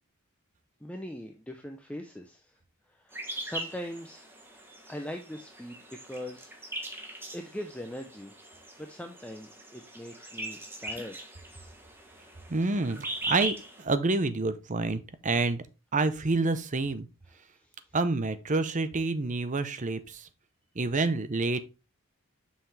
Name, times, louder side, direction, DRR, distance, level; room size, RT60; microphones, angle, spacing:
voice 1, 0.8-2.5 2.9-4.3 4.9-6.8 7.3-8.3 8.8-11.2 17.6-17.7, left 1 dB, 5° left, 0.6 m, -41 dB
sound 1, 3.1-13.8, right 1 dB, 10° right, 1.4 m, -40 dB
voice 2, 12.5-15.6 15.9-17.1 17.9-20.3 20.7-21.6, right 3 dB, 35° right, 0.7 m, -28 dB
7.3 x 5.8 x 3.2 m
head